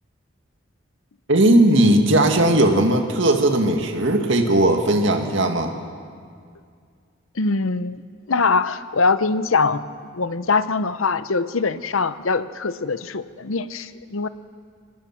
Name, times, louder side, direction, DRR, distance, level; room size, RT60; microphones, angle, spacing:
voice 1, 1.3-5.7, right 1 dB, 70° right, 4 dB, 2.0 m, -17 dB
voice 2, 7.4-8.0 8.3-9.8 10.1-14.3, left 4 dB, 85° left, 13 dB, 0.8 m, -22 dB
25.5 x 18.0 x 5.9 m, 2.1 s
head